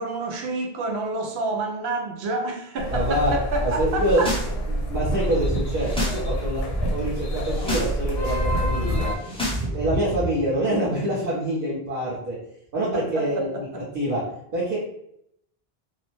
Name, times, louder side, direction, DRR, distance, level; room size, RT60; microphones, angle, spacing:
voice 1, 0.0-4.3 12.9-13.8, right 2 dB, 90° right, 0.9 m, -29 dB
sound 1, 2.8-9.2, equal, 80° left, 0.8 m, -27 dB
voice 2, 2.9-3.3 3.6-4.2 4.7-6.6 6.9-9.1 9.7-12.4 12.7-13.7 13.9-14.2 14.5-14.8, right 1 dB, 60° right, 1.0 m, -25 dB
sound 2, 3.9-4.5 4.8-6.2 6.5-6.9 7.3-7.9 8.2-10.3, equal, 5° left, 0.5 m, -30 dB
2.7 x 2.0 x 3.0 m
omnidirectional pair, 1.0 m